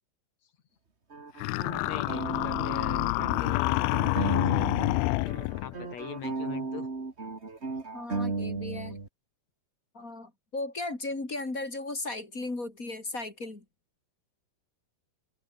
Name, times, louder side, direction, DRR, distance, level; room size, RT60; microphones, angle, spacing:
sound 1, 1.1-5.0 5.2-9.1, right 3 dB, 25° right, 1.6 m, -35 dB
sound 2, 1.4-5.7, left 23 dB, 90° left, 2.2 m, -28 dB
voice 1, 1.9-6.9, left 8 dB, 50° left, 2.7 m, -42 dB
voice 2, 7.9-9.0 9.9-13.6, left 2 dB, 20° left, 3.7 m, -36 dB
omnidirectional pair, 4.9 m